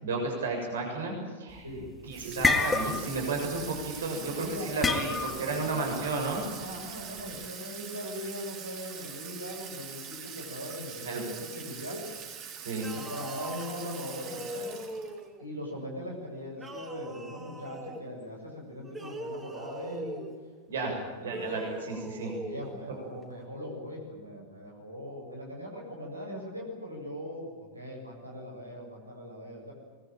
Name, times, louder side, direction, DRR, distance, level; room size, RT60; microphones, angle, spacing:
voice 1, 0.0-1.6 2.1-6.4 11.0-11.2 12.6-12.9 20.7-21.0 21.2-22.3, right 3 dB, 65° right, 1 dB, 6.9 m, -32 dB
sound 1, 1.6-1.9 2.2-3.3 3.5-3.8 4.8-5.5, left 4 dB, 10° left, 1.8 m, -27 dB
Water tap faucet / Sink (filling or washing), 2.1-15.2, right 7 dB, 40° right, 3.6 m, -43 dB
voice 2, 4.3-5.8 6.6-12.0 12.9-14.8 15.4-20.2 20.8-21.6 22.4-29.7, equal, 85° right, -1 dB, 7.2 m, -40 dB
sound 2, 12.7-15.5 16.5-18.1 18.8-20.4 21.2-22.7, right 1 dB, 15° right, 4.1 m, -41 dB
24.0 x 21.5 x 9.0 m, 1.4 s
figure-of-eight pair, 90°, 0 cm